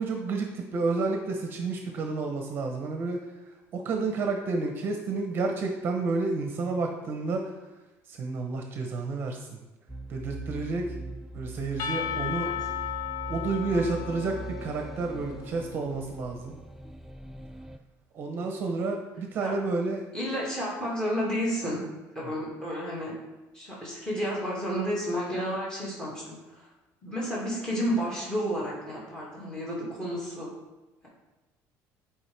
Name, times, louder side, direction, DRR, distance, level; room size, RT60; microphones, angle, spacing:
voice 1, 0.0-3.2 3.7-7.5 8.1-9.6 10.1-10.9 11.3-12.5 13.3-16.5 18.1-20.0, right 3 dB, 35° right, 3 dB, 0.8 m, -30 dB
sound 1, 9.9-17.8, right 2 dB, 5° right, 0.3 m, -41 dB
Percussion / Church bell, 11.8-15.8, left 9 dB, 65° left, 0.7 m, -35 dB
voice 2, 20.1-21.8 22.1-23.2 23.5-26.7 27.0-30.5, equal, 10° left, -6 dB, 2.1 m, -31 dB
10.5 x 4.9 x 3.4 m, 1.1 s
cardioid pair, 160°, 6 cm